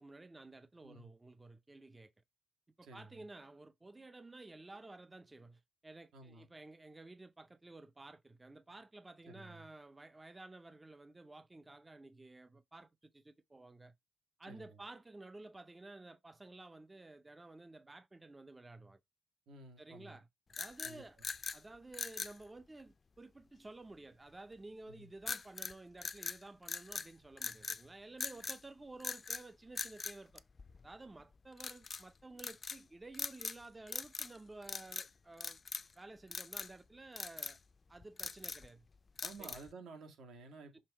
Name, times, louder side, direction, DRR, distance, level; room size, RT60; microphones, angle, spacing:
voice 1, 0.0-2.1 2.8-13.9 14.4-19.0 19.8-20.3 20.6-21.2 21.5-30.4 30.8-35.6 36.0-37.6 37.9-38.9 39.4-39.6 40.7-40.8, right 2 dB, 20° right, 0.5 m, -53 dB
voice 2, 2.8-3.2 6.1-6.5 9.3-9.7 14.4-14.8 19.5-20.2 20.8-21.0 24.9-25.1 39.2-40.8, right 3 dB, 80° right, 2.1 m, -53 dB
sound 1, 20.5-21.6 21.9-22.4 25.3-25.7 26.0-27.1 27.4-27.8 28.2-28.6 29.0-29.4 29.8-30.9 31.6-32.0 32.4-32.8 33.1-33.6 33.9-34.4 34.6-35.1 35.4-35.9 36.3-36.7 37.2-37.6 38.0-38.7 39.2-39.7, left 4 dB, 35° left, 0.4 m, -42 dB
6.6 x 3.5 x 4.3 m
cardioid pair, 105°, 0 cm